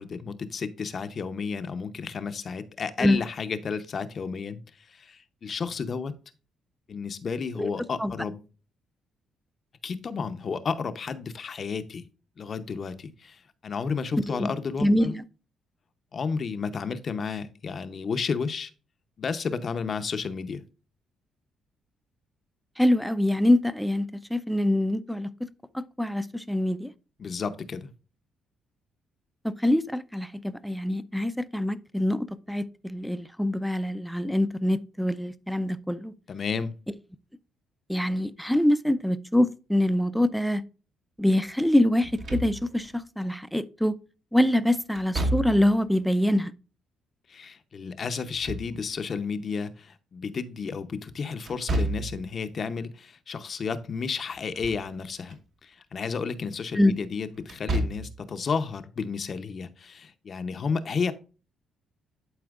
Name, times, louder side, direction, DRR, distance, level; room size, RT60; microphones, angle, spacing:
voice 1, 0.0-4.6 4.9-6.1 6.9-8.4 9.8-12.1 12.4-15.1 16.1-18.7 19.2-20.6 27.2-27.9 36.3-36.7 47.3-61.1, left 5 dB, 45° left, 0.7 m, -32 dB
voice 2, 14.1-14.5 14.8-15.2 22.8-25.3 25.7-26.9 29.4-36.1 37.9-40.6 41.2-44.0 44.3-46.5 56.7-57.0, left 1 dB, ahead, 0.5 m, -25 dB
Slam / Thump thud, 42.0-42.9 45.0-45.9 48.1-49.2 51.5-52.3 54.3-54.9 55.3-55.4 57.4-58.2, right 1 dB, 60° right, 1.4 m, -31 dB
11.5 x 4.3 x 2.4 m
cardioid pair, 90°, 0 cm